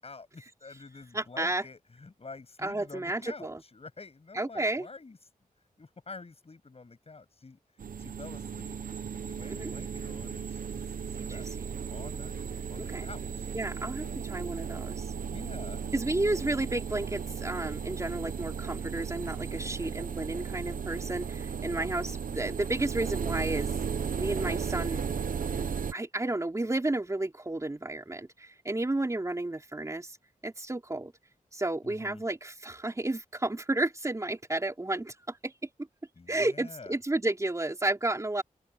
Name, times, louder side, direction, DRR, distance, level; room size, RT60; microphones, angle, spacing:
voice 1, 0.0-5.2 5.8-8.8 9.1-11.5 11.9-14.2 15.2-15.9 31.8-32.2 36.2-36.9, left 4 dB, 45° left, 7.2 m, -48 dB
voice 2, 1.1-1.6 2.6-3.6 4.3-4.9 9.5-9.7 11.1-11.4 12.8-13.1 13.5-15.1 15.9-23.7 24.2-25.0 25.5-30.1 30.4-31.1 31.5-35.5 36.3-38.4, right 2 dB, 20° right, 3.4 m, -32 dB
sound 1, 7.8-25.9, right 6 dB, 75° right, 0.9 m, -35 dB
open air
wide cardioid pair, 120°, 14 cm